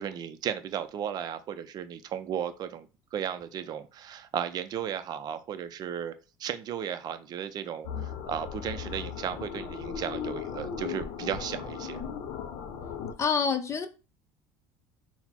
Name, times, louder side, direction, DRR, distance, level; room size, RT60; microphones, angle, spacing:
voice 1, 0.0-6.1 6.4-12.0, right 9 dB, 40° right, 0.4 m, -35 dB
sound 1, 7.8-13.1, left 7 dB, 65° left, 0.7 m, -37 dB
voice 2, 13.2-13.9, left 6 dB, 25° left, 0.5 m, -26 dB
4.0 x 2.1 x 4.2 m
cardioid pair, 130°, 11 cm